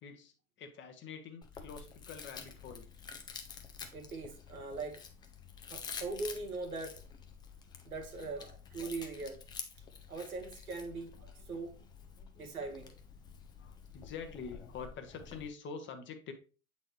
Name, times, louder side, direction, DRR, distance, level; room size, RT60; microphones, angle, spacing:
voice 1, 0.0-2.9 11.4-11.5 12.1-12.5 13.6-16.3, left 5 dB, 25° left, 7 dB, 0.8 m, -46 dB
Chewing mastication, 1.4-15.5, left 6 dB, 10° left, 0.4 m, -49 dB
voice 2, 3.9-5.0 5.7-7.0 7.8-9.4 10.1-11.8 12.3-12.9, right 3 dB, 80° right, 3 dB, 1.5 m, -41 dB
7.5 x 4.0 x 3.1 m, 0.34 s
figure-of-eight pair, 85°, 43 cm